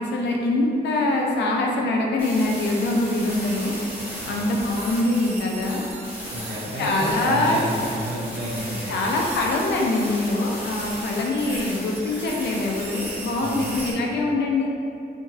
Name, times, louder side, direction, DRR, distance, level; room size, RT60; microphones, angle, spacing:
voice 1, 0.0-3.7 4.3-5.8 6.8-7.6 8.9-14.7, left 2 dB, 90° left, -1 dB, 0.4 m, -23 dB
sound 1, 2.2-13.9, equal, 10° right, 0.9 m, -35 dB
voice 2, 4.2-4.5 6.3-9.0 13.4-13.7, right 1 dB, 75° right, -5 dB, 0.7 m, -31 dB
2.9 x 2.5 x 2.5 m, 2.5 s
cardioid pair, 95°, 17 cm